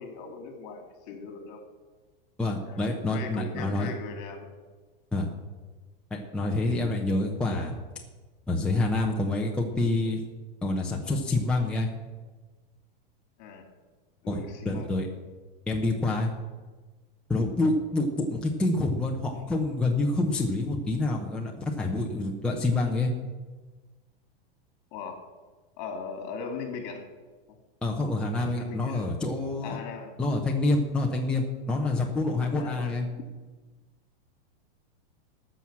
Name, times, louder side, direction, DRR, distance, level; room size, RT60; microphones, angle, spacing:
voice 1, 0.0-1.6 2.6-2.8 3.1-4.5 13.4-13.7 14.2-14.9 24.9-25.2 25.8-27.1 27.5-27.6 28.0-29.1 29.6-30.1 32.6-32.9 33.2-33.3, left 5 dB, 45° left, 5 dB, 2.5 m, -39 dB
voice 2, 2.4-3.9 5.1-5.3 6.1-7.8 8.5-10.2 10.6-11.9 14.3-14.4 14.6-15.1 15.7-16.3 17.3-23.1 27.8-29.8 30.2-33.1, left 2 dB, 5° left, -1 dB, 0.8 m, -27 dB
14.0 x 6.3 x 7.3 m, 1.3 s
supercardioid pair, 155°, 30 cm